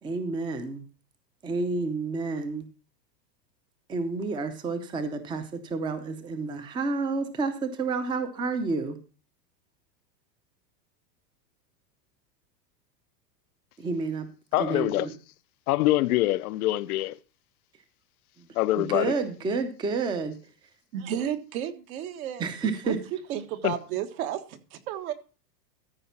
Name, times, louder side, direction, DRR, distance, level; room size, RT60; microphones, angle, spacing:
voice 1, 0.0-0.9 1.4-2.6 3.9-9.0 13.8-14.3 14.6-15.1 18.4-18.5 18.8-20.4 22.4-23.0, right 4 dB, 10° right, 0.6 m, -30 dB
voice 2, 14.5-15.1 15.7-17.2 18.6-19.1 23.6-23.8, left 16 dB, 65° left, 0.6 m, -24 dB
voice 3, 20.9-22.4 22.8-22.9 23.3-25.1, right 10 dB, 60° right, 1.5 m, -32 dB
14.0 x 4.9 x 5.6 m
supercardioid pair, 145°, 49 cm